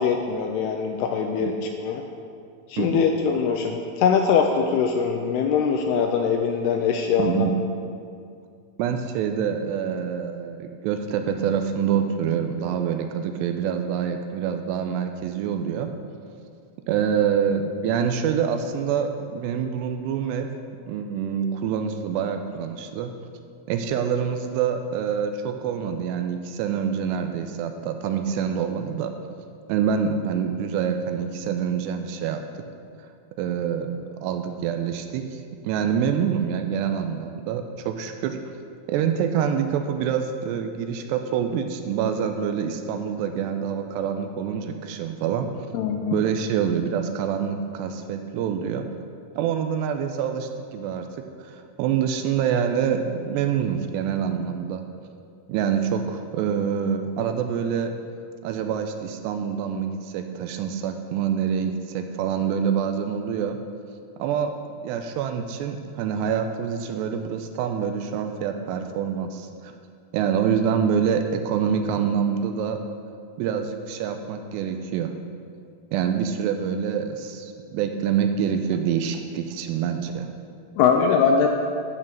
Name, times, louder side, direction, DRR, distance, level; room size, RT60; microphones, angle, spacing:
voice 1, 0.0-2.0 2.7-7.5 45.7-46.2 80.8-81.5, left 6 dB, 85° left, 3 dB, 2.4 m, -22 dB
voice 2, 7.2-7.5 8.8-15.9 16.9-20.5 20.9-23.1 23.7-29.1 29.7-32.4 33.4-38.4 38.9-45.7 46.1-48.9 49.3-51.1 51.4-54.9 55.5-57.9 58.4-63.6 64.2-64.5 64.8-69.8 70.1-72.8 73.4-75.1 75.9-80.3, right 7 dB, 80° right, 6 dB, 2.6 m, -26 dB
12.0 x 4.5 x 7.5 m, 2.3 s
omnidirectional pair, 5.1 m